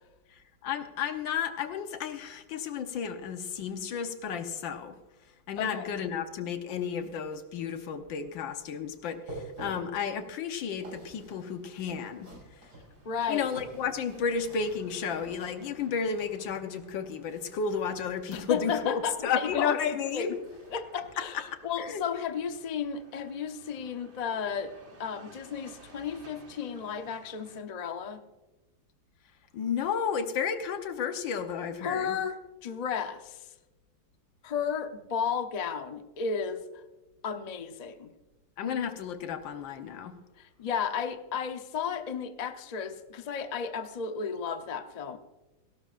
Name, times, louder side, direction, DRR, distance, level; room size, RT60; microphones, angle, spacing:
voice 1, 0.3-5.0 5.5-12.3 13.3-20.4 21.2-21.4 21.8-22.0 29.5-32.2 38.6-40.1, left 6 dB, 80° left, 1.7 m, -32 dB
voice 2, 5.6-5.9 13.0-13.5 18.3-20.3 20.7-28.2 31.8-33.5 34.4-36.6 37.2-38.1 40.4-45.2, left 6 dB, 65° left, 0.4 m, -33 dB
sound 1, 9.1-15.8 17.2-19.0 19.3-21.3 21.7-21.9 22.4-22.5, right 2 dB, 65° right, 6.9 m, -49 dB
sound 2, 12.1-27.6, right 2 dB, 35° right, 1.9 m, -57 dB
18.0 x 17.0 x 2.5 m
omnidirectional pair, 2.0 m